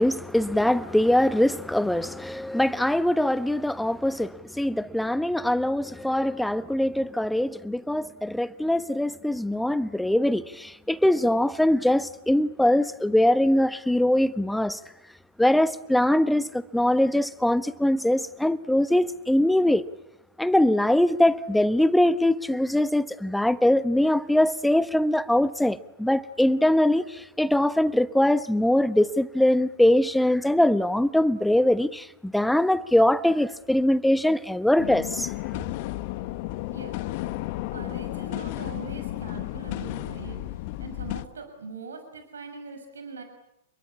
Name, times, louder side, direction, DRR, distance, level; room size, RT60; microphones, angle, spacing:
voice 1, 0.0-14.8 15.4-19.8 20.4-35.3, left 1 dB, 5° left, 1.2 m, -22 dB
sound 1, 34.8-41.2, left 17 dB, 50° left, 1.3 m, -33 dB
voice 2, 37.7-40.4 40.8-43.2, right 4 dB, 80° right, 6.3 m, -41 dB
29.5 x 22.5 x 8.5 m
hypercardioid pair, 105°, 0 cm